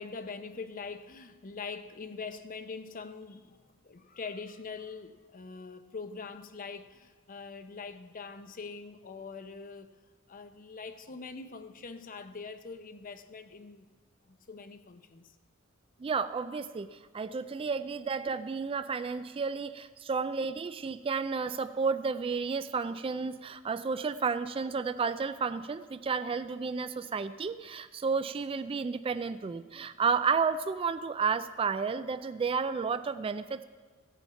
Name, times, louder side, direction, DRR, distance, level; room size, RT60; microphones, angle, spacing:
voice 1, 0.0-3.6 3.8-9.9 10.3-13.9 14.3-15.3, left 4 dB, 40° left, 10 dB, 0.7 m, -43 dB
voice 2, 16.0-33.6, right 5 dB, 25° right, 12 dB, 0.3 m, -32 dB
16.0 x 7.0 x 5.7 m, 1.5 s
head